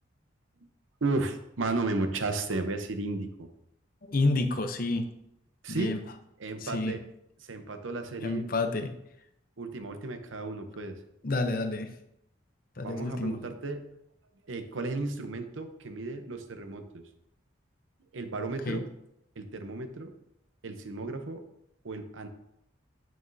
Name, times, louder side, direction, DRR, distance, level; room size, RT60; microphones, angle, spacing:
voice 1, 1.0-3.5 5.6-5.9 6.4-7.0 7.4-8.4 9.6-11.0 12.8-13.8 14.5-17.0 18.1-18.9 19.4-20.1 20.6-21.4 21.8-22.3, right 3 dB, 90° right, 7 dB, 0.8 m, -34 dB
voice 2, 4.0-5.1 5.7-6.0 6.6-7.0 8.2-8.9 11.2-11.9 12.8-13.4 18.7-18.8, left 2 dB, 45° left, 7 dB, 0.7 m, -29 dB
9.0 x 6.2 x 2.7 m, 0.81 s
head